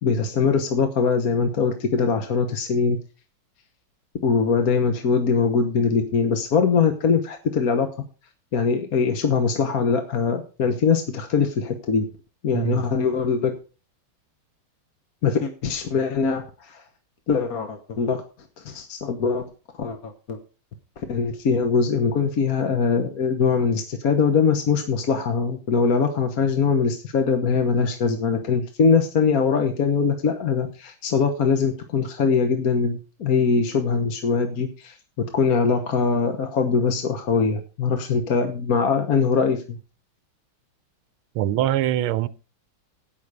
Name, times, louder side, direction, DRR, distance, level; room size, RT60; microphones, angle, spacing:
voice 1, 0.0-3.0 4.2-7.9 8.5-12.1 12.4-13.5 15.2-16.8 17.3-18.2 18.6-19.5 19.8-20.4 21.1-35.0 35.3-39.8, left 5 dB, 50° left, 1.4 m, -22 dB
voice 2, 12.5-12.8 41.3-42.3, right 13 dB, 85° right, 1.6 m, -23 dB
16.5 x 6.5 x 4.9 m
omnidirectional pair, 2.3 m